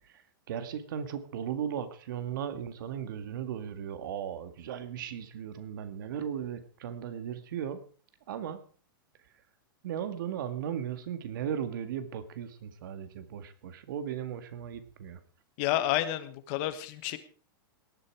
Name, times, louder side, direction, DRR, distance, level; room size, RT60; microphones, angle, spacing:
voice 1, 0.5-7.8 8.3-8.6 9.8-15.2, right 8 dB, 65° right, 11 dB, 2.0 m, -36 dB
voice 2, 15.6-17.2, left 13 dB, 35° left, 12 dB, 1.3 m, -30 dB
18.0 x 11.0 x 4.8 m, 0.40 s
supercardioid pair, 170°, 12 cm